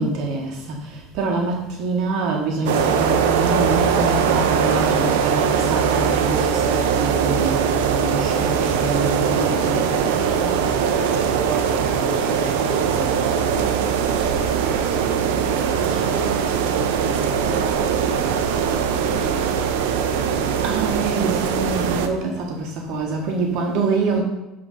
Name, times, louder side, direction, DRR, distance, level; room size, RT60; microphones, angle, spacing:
voice 1, 0.0-10.1 20.6-24.2, right 3 dB, 60° right, 1.5 m, -25 dB
sound 1, 2.6-22.1, right 7 dB, 90° right, 0.7 m, -21 dB
voice 2, 10.0-19.9, right 3 dB, 25° right, 1.8 m, -36 dB
9.7 x 4.0 x 5.5 m
supercardioid pair, 125°, 0 cm